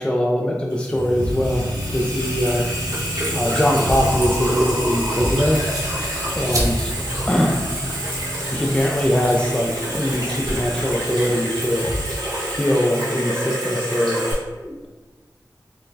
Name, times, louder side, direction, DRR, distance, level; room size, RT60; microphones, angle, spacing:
voice 1, 0.0-2.7 3.3-5.7 6.3-6.9 7.3-7.7 8.5-11.9 12.5-14.9, equal, 15° left, -1 dB, 0.3 m, -22 dB
Water tap faucet / Sink (filling or washing), 0.7-14.3, right 1 dB, 75° right, 1.2 m, -28 dB
sound 1, 0.9-12.0, equal, 85° left, 0.7 m, -31 dB
sound 2, 3.7-10.5, right 1 dB, 50° right, 0.7 m, -34 dB
4.2 x 2.0 x 2.6 m, 1.3 s
wide cardioid pair, 65°, 7 cm